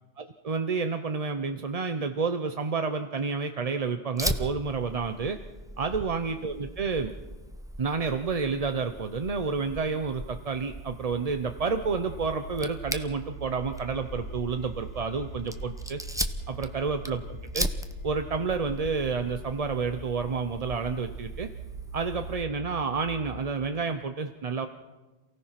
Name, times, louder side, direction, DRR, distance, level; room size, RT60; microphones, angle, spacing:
voice 1, 0.2-5.4 5.8-7.1 7.8-16.0 16.5-17.7 18.0-21.5 21.9-24.7, right 4 dB, 35° right, 8 dB, 0.7 m, -30 dB
Fire, 4.2-22.4, equal, 5° right, 0.8 m, -38 dB
sound 1, 9.1-23.6, right 2 dB, 50° right, 3.8 m, -43 dB
28.0 x 17.0 x 5.9 m, 1.2 s
omnidirectional pair, 1.3 m